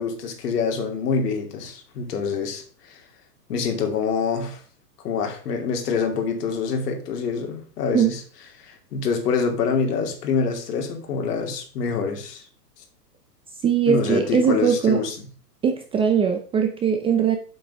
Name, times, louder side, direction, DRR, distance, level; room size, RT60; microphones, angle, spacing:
voice 1, 0.0-3.0 3.5-4.6 5.0-8.2 8.6-12.4 13.9-15.1, left 5 dB, 70° left, 4 dB, 2.8 m, -26 dB
voice 2, 13.6-15.0 15.6-17.4, right 7 dB, 10° right, 5 dB, 0.6 m, -20 dB
7.9 x 6.2 x 5.6 m, 0.41 s
hypercardioid pair, 140°, 49 cm